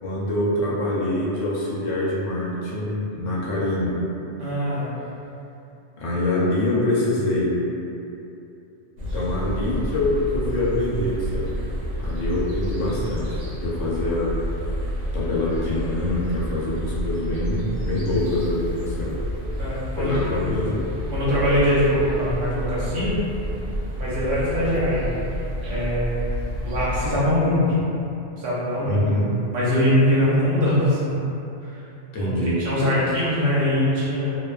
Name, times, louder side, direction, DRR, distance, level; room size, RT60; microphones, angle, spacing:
voice 1, 0.0-4.0 6.0-7.5 9.0-11.5 12.0-14.3 15.1-19.1 20.0-20.8 28.8-29.3 32.1-32.6, left 1 dB, 85° left, -6 dB, 1.0 m, -25 dB
voice 2, 4.4-4.9 19.6-20.5 21.1-23.1 24.0-25.2 25.7-26.3 26.6-27.9 28.4-29.0 29.5-31.2 31.6-31.8 32.2-34.4, equal, 65° right, -9 dB, 1.0 m, -22 dB
sound 1, 9.0-27.1, equal, 85° right, 1.0 m, -30 dB
2.5 x 2.2 x 2.3 m, 2.8 s
omnidirectional pair, 1.2 m